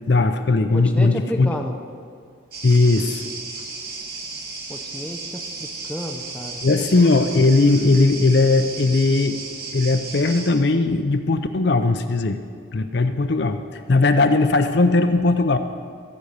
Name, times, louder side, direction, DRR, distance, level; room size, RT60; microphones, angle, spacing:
voice 1, 0.1-1.5 2.6-3.2 6.6-9.4 9.7-12.4 12.7-15.6, left 3 dB, 55° left, 8 dB, 0.5 m, -18 dB
voice 2, 0.7-1.7 4.7-6.6, equal, 5° left, 3 dB, 0.6 m, -31 dB
sound 1, 2.5-10.5, right 3 dB, 50° right, 1.7 m, -34 dB
14.5 x 5.3 x 8.2 m, 2.2 s
head